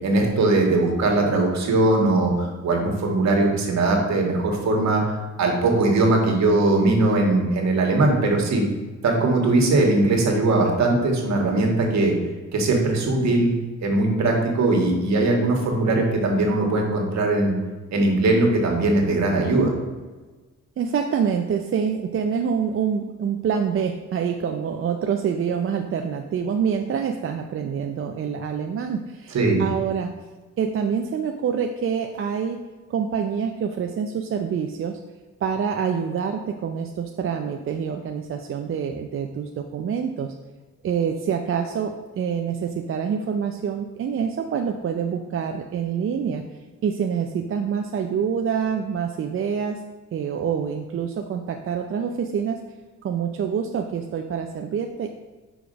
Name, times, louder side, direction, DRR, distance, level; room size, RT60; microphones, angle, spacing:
voice 1, 0.0-5.0 5.4-8.6 9.0-12.1 12.5-13.5 13.8-17.5 17.9-19.7 29.3-29.6, right 2 dB, 65° right, 1 dB, 1.6 m, -20 dB
voice 2, 20.8-30.1 30.6-32.6 32.9-35.0 35.4-40.3 40.8-46.4 46.8-49.8 50.1-52.6 53.0-55.1, right 7 dB, 45° right, 4 dB, 0.5 m, -26 dB
5.0 x 4.9 x 5.1 m, 1.3 s
cardioid pair, 90°, 30 cm